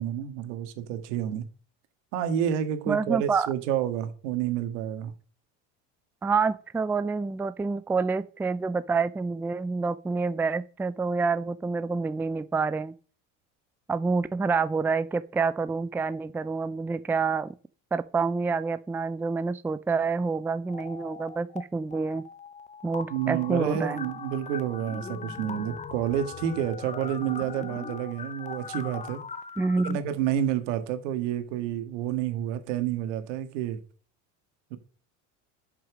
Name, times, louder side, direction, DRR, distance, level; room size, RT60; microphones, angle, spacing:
voice 1, 0.0-1.4 2.1-5.1 23.1-29.2 29.8-33.8 34.7-34.8, right 10 dB, 80° right, 2.0 m, -29 dB
voice 2, 2.9-3.5 6.2-12.9 13.9-17.5 17.9-22.2 22.8-24.0 29.6-30.0, right 4 dB, 5° right, 0.4 m, -27 dB
sound 1, 20.7-21.6 21.9-29.9, left 5 dB, 20° left, 0.9 m, -40 dB
11.0 x 6.2 x 6.1 m
supercardioid pair, 115°, 36 cm